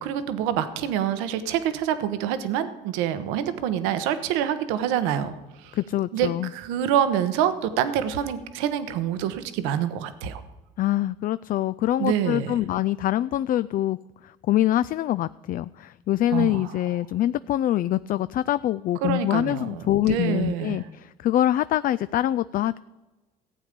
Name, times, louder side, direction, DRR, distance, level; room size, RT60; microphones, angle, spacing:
voice 1, 0.0-5.7 6.1-10.4 12.0-12.5 16.3-16.7 19.0-20.8, right 9 dB, 80° right, 11 dB, 1.1 m, -26 dB
voice 2, 5.7-6.5 10.8-14.0 14.2-22.8, left 13 dB, 45° left, 15 dB, 0.4 m, -24 dB
15.5 x 8.5 x 5.2 m, 1.2 s
supercardioid pair, 75°, 20 cm